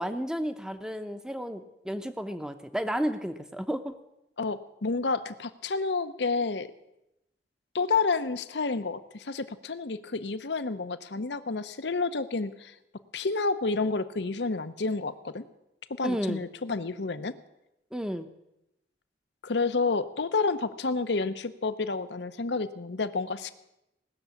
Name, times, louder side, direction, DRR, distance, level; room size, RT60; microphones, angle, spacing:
voice 1, 0.0-3.9 16.0-16.4 17.9-18.3, equal, 5° right, 9 dB, 0.8 m, -32 dB
voice 2, 4.4-6.7 7.7-12.7 13.1-15.5 16.0-17.4 19.4-23.5, left 4 dB, 70° left, 12 dB, 0.8 m, -30 dB
18.5 x 6.9 x 8.3 m, 0.88 s
head